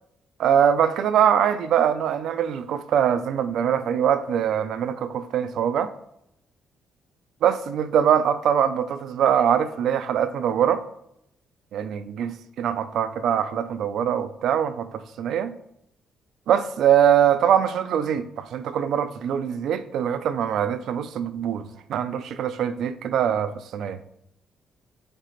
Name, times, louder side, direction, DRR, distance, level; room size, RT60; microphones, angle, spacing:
voice 1, 0.4-5.9 7.4-10.8 11.7-15.5 16.5-21.6 21.9-24.0, right 9 dB, 75° right, 0.5 m, -23 dB
5.2 x 4.0 x 5.6 m
cardioid pair, 90°, 0 cm